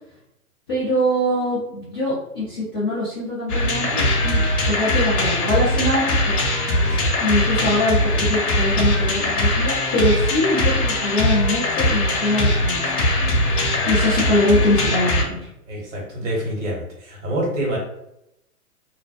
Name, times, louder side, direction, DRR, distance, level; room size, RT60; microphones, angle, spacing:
voice 1, 0.7-6.4 7.2-13.0 13.8-15.4, left 1 dB, 15° left, -12 dB, 0.3 m, -23 dB
sound 1, 3.5-15.3, left 1 dB, 70° left, 0.8 m, -21 dB
voice 2, 6.8-7.1 15.7-17.8, right 1 dB, 50° right, -3 dB, 1.2 m, -27 dB
2.4 x 2.1 x 2.5 m, 0.81 s
figure-of-eight pair, 115°, 45 cm